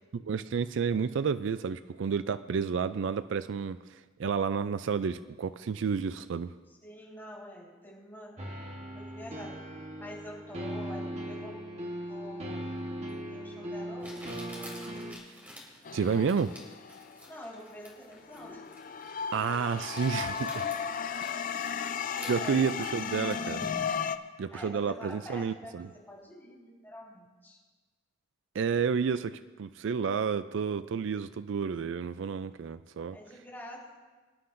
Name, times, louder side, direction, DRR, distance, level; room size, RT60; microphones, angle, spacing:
voice 1, 0.1-6.5 15.9-16.6 19.3-20.7 22.3-23.6 24.4-25.9 28.5-33.2, right 6 dB, 65° right, 13 dB, 0.4 m, -30 dB
voice 2, 6.8-8.4 8.9-9.6 10.0-11.5 12.0-12.7 13.2-14.8 17.3-18.6 20.4-20.7 22.2-23.0 24.5-27.6 33.1-34.0, equal, 10° left, -6 dB, 4.7 m, -46 dB
sound 1, 8.4-15.1, equal, 35° right, 1.4 m, -39 dB
Crumpling crinkling, 13.1-13.2 14.0-24.1, equal, 10° right, 3.2 m, -49 dB
sound 2, 15.8-17.8 18.3-24.2, left 7 dB, 45° left, 0.5 m, -35 dB
24.5 x 11.5 x 2.6 m, 1.3 s
head